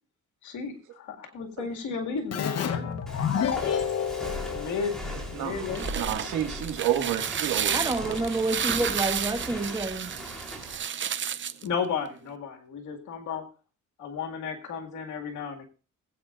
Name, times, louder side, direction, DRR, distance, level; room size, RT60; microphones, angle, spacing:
voice 1, 0.4-3.0 4.5-5.0 5.3-6.1 11.6-13.4 14.0-15.7, left 6 dB, 75° left, 4 dB, 2.2 m, -33 dB
Keyboard (musical), 2.3-5.7, left 8 dB, 55° left, 1.1 m, -30 dB
Walk footsteps, 3.1-10.7, equal, ahead, 3.6 m, -39 dB
voice 2, 5.1-8.3, right 10 dB, 90° right, 4 dB, 2.0 m, -31 dB
sound 1, 5.5-11.7, right 8 dB, 40° right, 0.6 m, -32 dB
voice 3, 7.7-10.1, right 2 dB, 15° right, 5 dB, 1.7 m, -28 dB
21.0 x 8.4 x 2.5 m, 0.36 s
cardioid pair, 90°, 30 cm